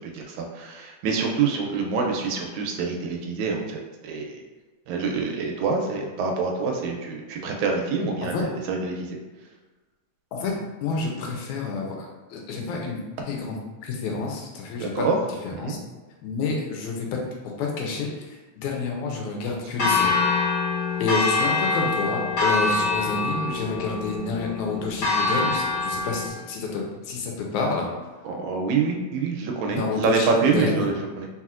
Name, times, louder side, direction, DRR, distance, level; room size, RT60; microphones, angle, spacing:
voice 1, 0.0-4.4 4.9-9.2 14.8-15.2 15.5-15.7 28.2-31.3, right 4 dB, 80° right, 1 dB, 1.8 m, -26 dB
voice 2, 10.8-15.1 15.4-15.8 16.2-17.1 17.4-20.2 21.0-27.9 29.7-30.9, left 4 dB, 85° left, 0 dB, 2.1 m, -29 dB
Church bell, 19.8-26.3, left 3 dB, 65° left, 1.2 m, -25 dB
4.3 x 4.1 x 2.4 m, 1.2 s
omnidirectional pair, 3.4 m